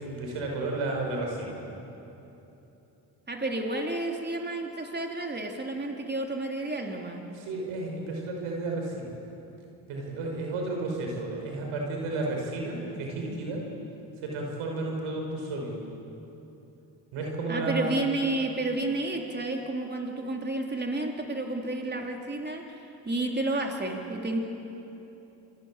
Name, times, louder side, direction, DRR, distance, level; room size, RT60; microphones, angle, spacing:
voice 1, 0.0-1.6 7.3-9.1 9.9-13.6 14.2-15.7 17.1-18.1, right 2 dB, 85° right, 0 dB, 5.5 m, -32 dB
voice 2, 3.3-7.2 17.5-22.8 23.0-24.4, right 2 dB, 20° right, 2 dB, 3.5 m, -31 dB
27.0 x 22.5 x 7.6 m, 3.0 s
supercardioid pair, 50°, 48 cm